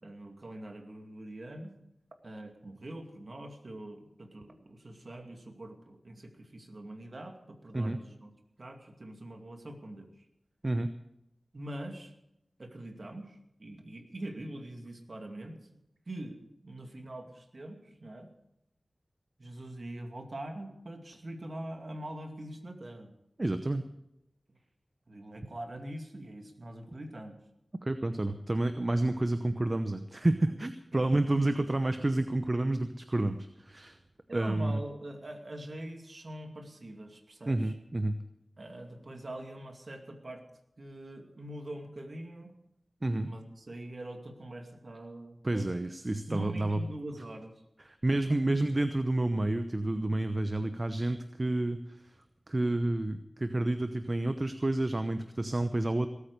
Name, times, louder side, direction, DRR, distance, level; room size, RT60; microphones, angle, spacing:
voice 1, 0.0-1.7 2.2-8.3 8.6-10.1 11.5-12.1 12.6-15.6 16.1-18.3 19.4-23.1 25.1-27.4 29.2-29.3 30.9-31.5 34.3-37.7 38.6-40.4 40.8-42.5 43.2-45.7 46.3-47.5, right 1 dB, 55° right, 4 dB, 2.4 m, -43 dB
voice 2, 23.4-23.8 27.8-34.0 34.3-34.8 37.5-38.2 43.0-43.3 45.4-46.8 47.9-52.0 52.5-56.1, right 2 dB, 40° right, 9 dB, 0.8 m, -29 dB
18.5 x 8.8 x 6.8 m, 0.82 s
cardioid pair, 45°, 0 cm